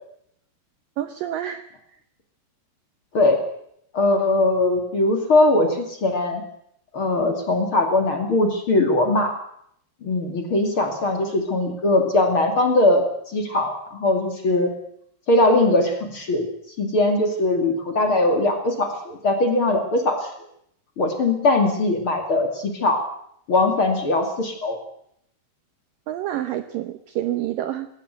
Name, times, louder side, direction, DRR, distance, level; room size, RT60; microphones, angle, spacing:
voice 1, 1.0-1.6 26.1-27.9, right 12 dB, 75° right, 10 dB, 2.1 m, -28 dB
voice 2, 3.9-6.4 6.9-9.3 10.0-13.0 13.3-14.7 15.3-16.5 16.8-20.3 21.0-23.0 23.5-24.8, left 2 dB, 35° left, 4 dB, 2.6 m, -20 dB
20.5 x 17.5 x 8.1 m, 0.71 s
omnidirectional pair, 5.0 m